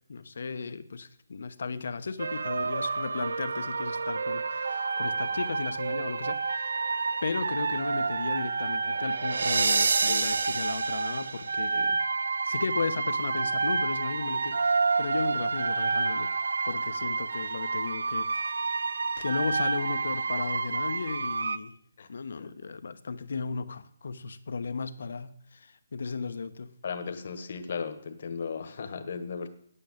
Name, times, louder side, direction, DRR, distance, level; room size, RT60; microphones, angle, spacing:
voice 1, 0.1-6.8 7.2-12.0 12.4-16.3 16.7-18.8 19.2-21.8 22.1-26.7, left 4 dB, 70° left, 1.0 m, -35 dB
sound 1, 2.2-21.6, right 4 dB, 80° right, 0.6 m, -29 dB
voice 2, 26.8-29.5, left 5 dB, 50° left, 1.4 m, -36 dB
9.0 x 8.6 x 8.6 m
hypercardioid pair, 170°, 0 cm